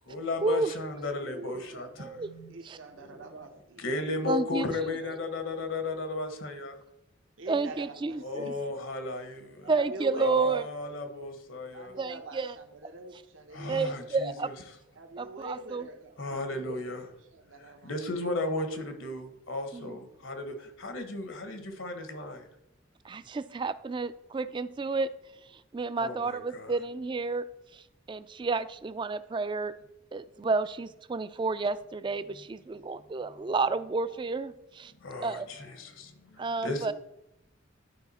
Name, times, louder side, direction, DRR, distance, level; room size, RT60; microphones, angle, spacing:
voice 1, 0.1-2.6 3.8-6.8 8.2-9.7 10.2-11.9 13.5-14.8 16.2-17.0 17.8-22.4 26.0-26.8 35.0-36.1 36.6-36.9, left 2 dB, 80° left, 7 dB, 1.3 m, -35 dB
voice 2, 1.0-1.9 2.5-3.8 4.6-5.2 7.4-8.6 9.6-10.7 11.7-13.9 14.9-17.9, right 2 dB, 80° right, 5 dB, 1.0 m, -44 dB
voice 3, 4.3-4.6 7.5-8.4 9.7-10.6 12.0-12.5 13.7-14.5 15.2-15.8 19.7-19.9 23.1-25.1 25.7-27.4 28.1-29.7 30.1-34.9 35.2-35.5 36.4-36.9, right 4 dB, 25° right, 14 dB, 0.3 m, -30 dB
11.5 x 4.8 x 4.2 m, 0.85 s
head